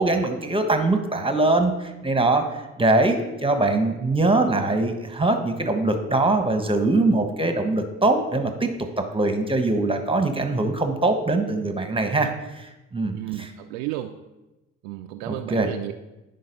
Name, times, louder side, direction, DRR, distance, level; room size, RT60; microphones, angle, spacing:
voice 1, 0.0-8.7 9.0-13.5 15.3-15.7, right 2 dB, 15° right, 6 dB, 1.3 m, -22 dB
voice 2, 13.1-14.2 14.8-15.9, right 15 dB, 80° right, 5 dB, 0.5 m, -32 dB
10.0 x 4.0 x 5.3 m, 1.0 s
hypercardioid pair, 55°, 35 cm